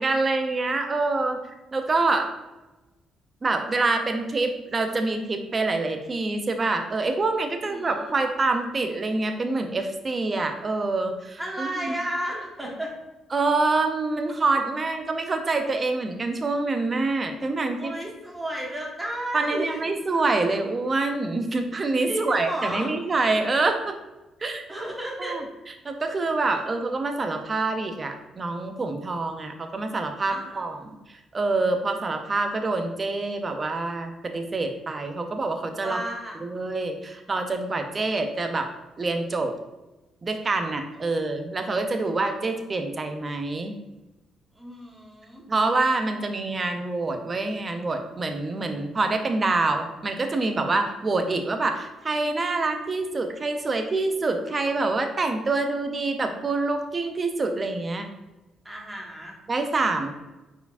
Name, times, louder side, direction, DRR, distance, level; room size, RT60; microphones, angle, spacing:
voice 1, 0.0-1.4 1.7-2.3 3.4-12.0 13.3-18.0 19.3-23.9 24.4-24.6 25.2-25.4 25.8-30.9 31.3-36.0 36.4-38.7 39.0-39.5 40.2-43.8 45.5-58.1 59.5-60.1, right 3 dB, 35° right, 6 dB, 0.6 m, -26 dB
voice 2, 7.6-8.2 11.4-12.9 17.8-19.8 22.1-22.9 24.7-25.4 30.3-30.6 35.8-36.4 40.9-41.3 44.5-45.4 58.6-59.4, right 1 dB, 15° right, -2 dB, 1.4 m, -33 dB
4.5 x 4.5 x 2.6 m, 1.0 s
cardioid pair, 90°, 0 cm